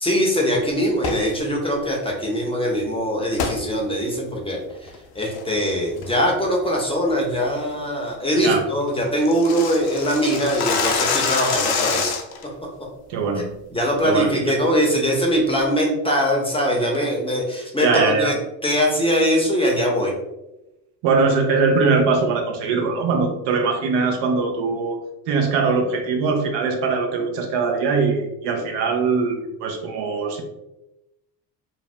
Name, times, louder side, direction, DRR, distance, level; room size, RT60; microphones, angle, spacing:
voice 1, 0.0-12.2 13.7-18.4 18.6-20.1, equal, 10° left, -1 dB, 0.7 m, -22 dB
sound 1, 0.9-1.3 3.4-3.6 4.1-4.2 4.7-5.0 5.3-5.7 6.0-6.3 6.6-6.7 7.1-7.4 7.7-7.8 8.1-8.2 8.4-8.5 8.8-12.4, left 6 dB, 50° left, 0.6 m, -25 dB
voice 2, 13.1-13.5 14.0-14.5 17.8-18.3 21.0-25.0 25.3-30.4, right 4 dB, 60° right, 3 dB, 0.7 m, -21 dB
2.7 x 2.0 x 3.2 m, 0.93 s
hypercardioid pair, 65°, 50 cm